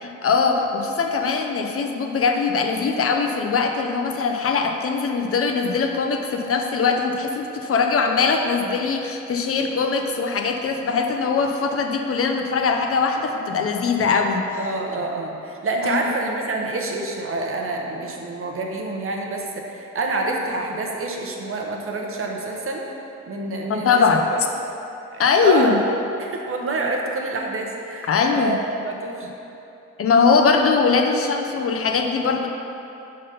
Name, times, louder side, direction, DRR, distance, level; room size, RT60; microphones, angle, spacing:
voice 1, 0.0-14.6 15.8-16.1 23.7-24.2 25.2-25.8 28.1-28.5 30.0-32.5, left 5 dB, 50° left, 3 dB, 0.5 m, -21 dB
voice 2, 14.6-22.8 23.3-24.2 25.1-25.7 26.2-29.3, right 2 dB, 45° right, 0 dB, 0.8 m, -27 dB
5.3 x 3.8 x 5.4 m, 2.9 s
cardioid pair, 110°, 31 cm